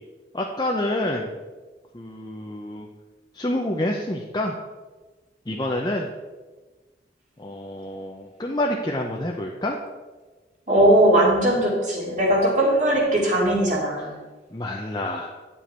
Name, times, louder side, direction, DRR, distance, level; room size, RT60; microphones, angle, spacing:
voice 1, 0.3-1.3 1.9-2.9 3.3-4.6 5.5-6.1 7.4-9.8 14.5-15.3, left 1 dB, 25° left, -1 dB, 0.7 m, -27 dB
voice 2, 10.7-14.1, right 1 dB, 45° right, -4 dB, 2.8 m, -19 dB
9.9 x 7.3 x 4.4 m, 1.3 s
head